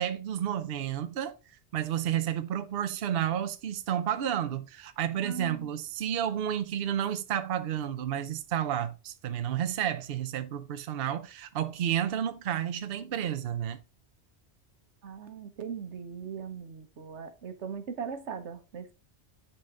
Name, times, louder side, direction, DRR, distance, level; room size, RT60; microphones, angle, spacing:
voice 1, 0.0-1.4 1.7-13.8, right 10 dB, 60° right, 0.8 m, -31 dB
voice 2, 5.2-5.7 15.0-18.9, right 6 dB, 85° right, 1.3 m, -39 dB
9.8 x 4.2 x 3.6 m
omnidirectional pair, 1.2 m